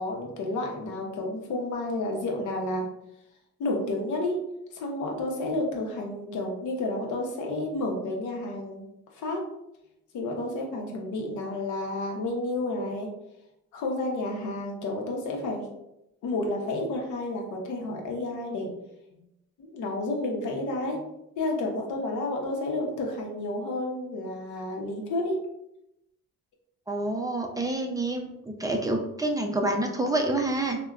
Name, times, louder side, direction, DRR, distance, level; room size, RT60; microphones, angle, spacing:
voice 1, 0.0-2.9 3.6-8.8 9.1-9.5 10.1-13.1 13.7-15.7 16.2-18.7 19.1-19.2 19.6-21.0 21.4-25.4, left 2 dB, 75° left, 1 dB, 0.8 m, -31 dB
voice 2, 26.9-30.8, right 2 dB, 10° right, 2 dB, 0.4 m, -28 dB
3.4 x 2.1 x 2.3 m, 0.85 s
cardioid pair, 90°, 30 cm